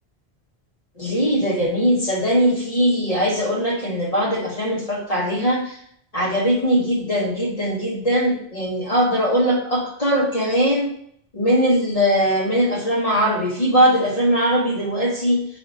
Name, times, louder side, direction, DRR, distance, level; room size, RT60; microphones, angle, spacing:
voice 1, 1.0-5.8 6.1-10.9 11.3-15.5, equal, 40° left, -2 dB, 1.0 m, -20 dB
5.1 x 3.5 x 2.6 m, 0.68 s
omnidirectional pair, 1.1 m